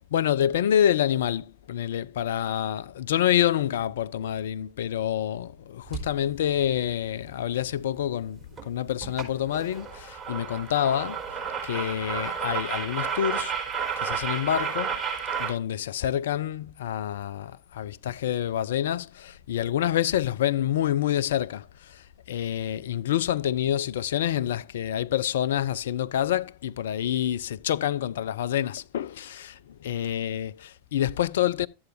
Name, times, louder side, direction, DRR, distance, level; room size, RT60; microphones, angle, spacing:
voice 1, 0.1-13.6 14.0-15.0 15.4-31.7, left 10 dB, 60° left, 0.4 m, -27 dB
sound 1, 5.9-6.1 8.6-8.7 9.0-9.3 9.5-15.5, right 7 dB, 25° right, 4.0 m, -31 dB
12.5 x 7.8 x 2.7 m
figure-of-eight pair, 90°, 0 cm